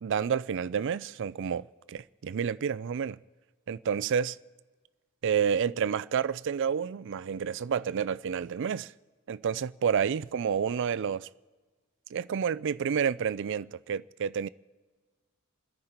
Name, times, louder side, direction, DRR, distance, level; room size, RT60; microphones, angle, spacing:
voice 1, 0.0-3.2 3.7-4.4 5.2-8.9 9.3-11.3 12.1-14.5, right 7 dB, 55° right, 0.4 m, -29 dB
29.5 x 10.5 x 4.4 m
head